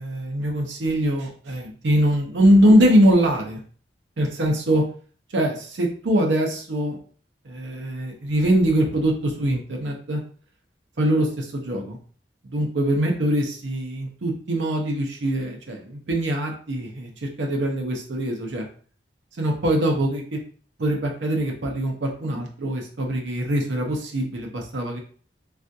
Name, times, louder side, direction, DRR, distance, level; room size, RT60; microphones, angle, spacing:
voice 1, 0.0-3.6 4.2-4.8 5.3-7.0 7.4-10.2 11.0-12.0 12.5-18.7 19.4-20.4 20.8-25.0, right 1 dB, 85° right, 1 dB, 0.6 m, -22 dB
3.4 x 2.4 x 2.6 m, 0.44 s
head